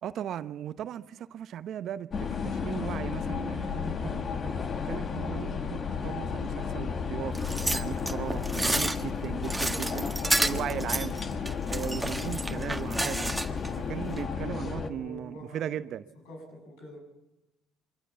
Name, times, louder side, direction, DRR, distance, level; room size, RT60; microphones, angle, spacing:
voice 1, 0.0-10.1 10.4-13.3 13.9-16.0, right 10 dB, 60° right, 0.8 m, -37 dB
sound 1, 2.1-14.9, left 6 dB, 45° left, 1.6 m, -33 dB
sound 2, 7.3-13.7 14.1-14.2, right 1 dB, 10° right, 1.6 m, -30 dB
voice 2, 9.7-10.6 14.2-15.7 16.3-17.1, equal, 80° left, 7.5 m, -45 dB
25.0 x 19.5 x 7.3 m
hypercardioid pair, 65°, 0 cm